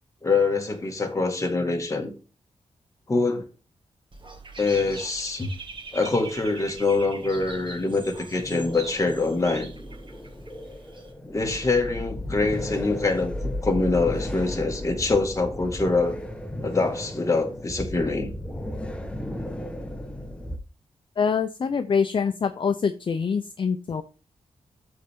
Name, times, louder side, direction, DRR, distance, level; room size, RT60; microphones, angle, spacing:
voice 1, 0.2-2.1 3.1-3.4 4.6-5.5 5.9-9.7 11.3-16.2 16.6-18.3, left 3 dB, 25° left, 1.9 m, -24 dB
Dog / Bird, 4.1-11.1, right 3 dB, 45° right, 2.1 m, -42 dB
sound 1, 7.4-20.6, left 1 dB, 10° left, 1.1 m, -35 dB
voice 2, 21.2-24.0, left 6 dB, 45° left, 0.6 m, -25 dB
12.5 x 4.4 x 3.6 m
cardioid pair, 90°, 12 cm